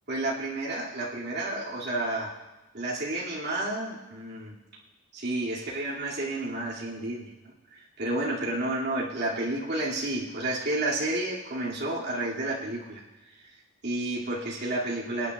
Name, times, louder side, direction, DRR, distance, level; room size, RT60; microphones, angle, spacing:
voice 1, 0.1-2.3 2.7-4.5 5.1-7.3 7.7-13.0 13.8-15.3, right 2 dB, 55° right, -6 dB, 2.5 m, -31 dB
27.0 x 9.4 x 2.4 m, 1.1 s
head